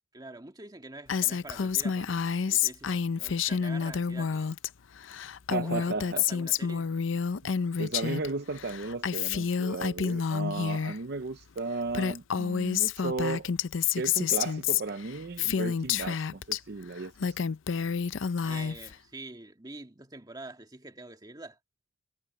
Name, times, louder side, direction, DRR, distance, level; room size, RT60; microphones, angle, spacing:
voice 1, 0.1-4.5 5.6-6.9 18.4-21.6, right 2 dB, 20° right, 1.9 m, -46 dB
Female speech woman speaking, 1.1-4.7 5.0-8.3 8.6-11.0 11.6-11.7 11.9-16.6 17.0-18.9, left 7 dB, 75° left, 0.6 m, -29 dB
voice 2, 5.5-6.3 7.4-7.5 7.8-13.5 13.9-17.4, right 3 dB, 55° right, 0.6 m, -35 dB
head